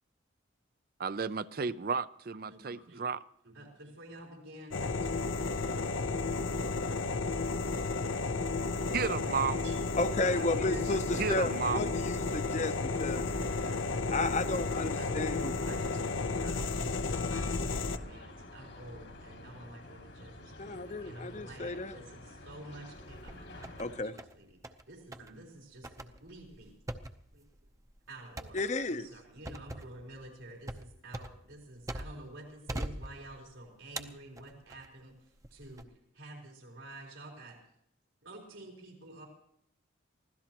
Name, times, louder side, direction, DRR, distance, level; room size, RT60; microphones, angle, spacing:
voice 1, 1.0-3.2 8.9-9.7 11.2-12.0, right 5 dB, 50° right, 0.5 m, -33 dB
voice 2, 2.5-3.0 3.4-8.4 8.7-12.3 12.8-14.3 15.0-16.7 17.3-26.7 27.3-27.4 28.1-37.6 38.2-39.3, right 1 dB, 85° right, 4.2 m, -50 dB
sound 1, 4.7-18.0, left 3 dB, 85° left, 0.8 m, -33 dB
voice 3, 10.0-12.7 13.0-13.3 14.1-15.5 20.6-22.0 23.8-24.2 28.5-29.1, left 2 dB, 40° left, 0.7 m, -33 dB
sound 2, 12.8-24.0, left 2 dB, 65° left, 2.1 m, -49 dB
sound 3, 22.9-23.8 24.2-24.8 25.1-25.3 25.8-32.3 32.7-33.5 34.0-34.9 35.4-35.8, right 1 dB, 15° right, 0.7 m, -42 dB
24.5 x 16.5 x 3.0 m
head